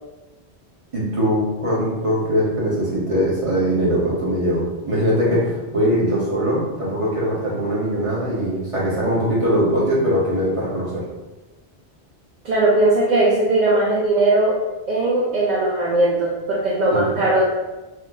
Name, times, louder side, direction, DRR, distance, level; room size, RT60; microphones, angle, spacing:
voice 1, 0.9-11.0 16.9-17.0, equal, 35° right, -6 dB, 1.0 m, -21 dB
voice 2, 12.4-14.6 14.9-17.4, right 2 dB, 55° right, -5 dB, 0.5 m, -18 dB
2.9 x 2.0 x 3.6 m, 1.1 s
omnidirectional pair, 1.1 m